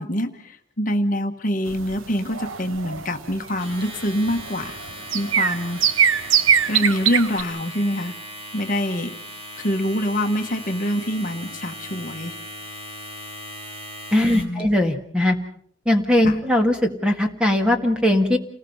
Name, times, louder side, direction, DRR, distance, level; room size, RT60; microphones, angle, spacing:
voice 1, 0.0-4.8 5.1-5.8 6.6-8.2 8.5-9.2 9.6-12.4 14.2-14.7 16.2-16.4, equal, 40° left, 5 dB, 1.3 m, -25 dB
sound 1, 1.7-7.4, right 8 dB, 90° right, 1.1 m, -22 dB
Domestic sounds home sounds, 3.5-14.6, equal, 30° right, 3.5 m, -38 dB
voice 2, 14.1-15.4 15.9-18.4, left 1 dB, 5° right, 4 dB, 1.8 m, -19 dB
29.0 x 20.0 x 5.5 m, 0.63 s
head